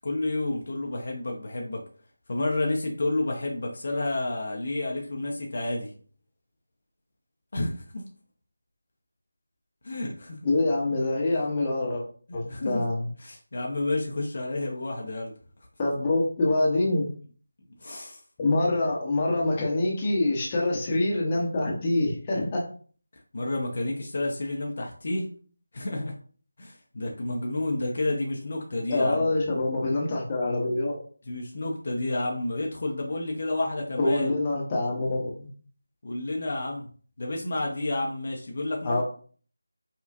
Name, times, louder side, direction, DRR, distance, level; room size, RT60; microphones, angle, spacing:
voice 1, 0.0-1.8 2.3-5.9 7.5-8.0 9.8-10.5 12.4-12.8 13.2-15.3 17.8-18.2 23.3-25.3 25.7-26.1 26.6-29.3 31.3-34.3 36.0-36.9 37.2-39.0, left 2 dB, 45° left, 0 dB, 0.7 m, -30 dB
voice 2, 10.4-12.0 12.3-13.1 15.8-17.0 18.4-22.6 28.9-31.0 34.0-35.3 38.8-39.0, left 2 dB, 20° left, -3 dB, 0.9 m, -25 dB
5.2 x 2.4 x 2.5 m, 0.44 s
figure-of-eight pair, 165°, 0 cm